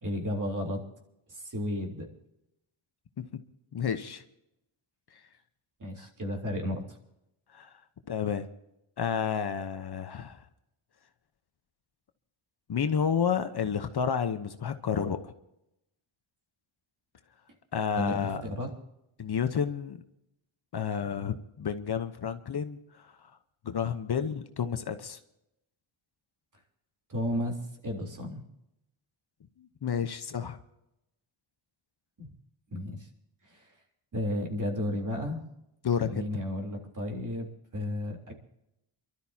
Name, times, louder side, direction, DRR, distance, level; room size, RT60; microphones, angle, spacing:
voice 1, 0.0-0.8 1.3-2.1 5.8-7.0 18.0-18.7 27.1-27.6 27.8-28.4 32.2-32.3 32.7-33.1 33.5-33.6 34.1-35.4 36.0-38.3, left 1 dB, 40° right, 1 dB, 3.6 m, -33 dB
voice 2, 3.7-4.2 6.0-6.1 7.5-7.7 8.1-8.5 9.0-10.4 12.7-15.3 17.7-18.4 19.2-20.0 20.7-22.8 23.6-25.2 29.6-30.6 35.8-36.4, left 7 dB, 50° left, 8 dB, 1.0 m, -30 dB
28.0 x 12.5 x 2.8 m, 0.84 s
wide cardioid pair, 115°, 50 cm